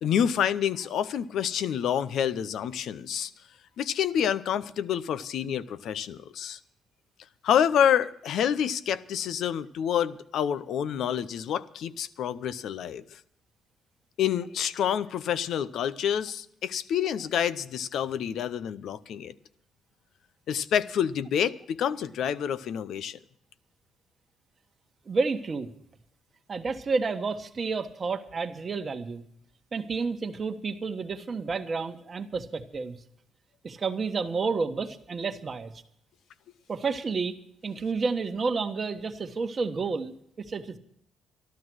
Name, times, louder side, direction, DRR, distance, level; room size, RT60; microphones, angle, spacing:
voice 1, 0.0-3.3 3.8-6.6 7.4-13.2 14.2-19.3 20.5-23.2, left 9 dB, 75° left, 0.6 m, -28 dB
voice 2, 25.1-25.7 26.5-29.3 29.7-33.0 33.6-35.7 36.7-37.4 37.6-40.8, right 4 dB, 40° right, 1.3 m, -30 dB
12.5 x 12.5 x 6.2 m
cardioid pair, 90°, 0 cm